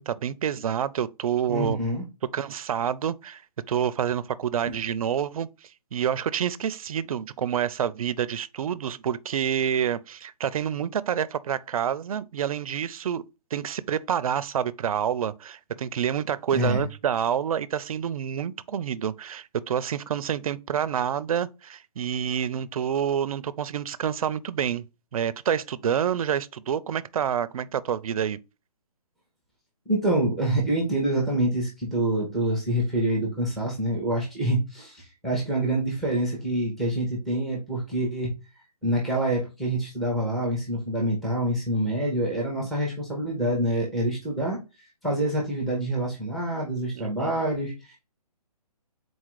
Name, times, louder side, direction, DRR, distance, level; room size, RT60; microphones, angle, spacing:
voice 1, 0.0-1.8 2.3-3.4 3.7-13.2 13.5-24.8 25.1-28.4 47.0-47.3, right 8 dB, 65° right, 0.4 m, -28 dB
voice 2, 1.5-2.0 16.5-16.8 29.9-38.4 38.8-44.6 45.0-48.0, right 1 dB, ahead, 0.7 m, -26 dB
4.0 x 2.4 x 4.6 m
hypercardioid pair, 165°, 20 cm